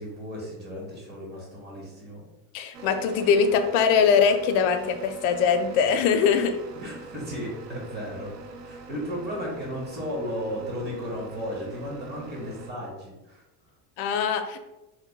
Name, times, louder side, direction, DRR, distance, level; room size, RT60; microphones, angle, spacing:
voice 1, 0.0-2.2 6.7-8.3 8.6-13.4, equal, 25° right, -3 dB, 1.2 m, -34 dB
voice 2, 2.5-6.6 14.0-14.6, left 6 dB, 85° left, 7 dB, 0.5 m, -22 dB
sound 1, 2.7-12.7, right 3 dB, 45° right, 0.5 m, -43 dB
3.0 x 2.2 x 3.9 m, 0.99 s
cardioid pair, 135°, 38 cm